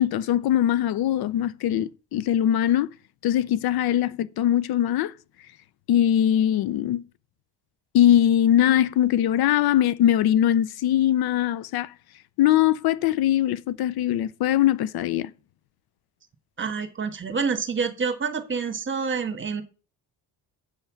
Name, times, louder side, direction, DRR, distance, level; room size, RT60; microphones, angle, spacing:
voice 1, 0.0-2.9 3.2-5.1 5.9-7.0 7.9-11.9 12.4-15.3, left 11 dB, 70° left, 0.6 m, -21 dB
voice 2, 16.6-19.6, right 5 dB, 30° right, 1.5 m, -27 dB
8.2 x 5.6 x 7.1 m
cardioid pair, 130°, 38 cm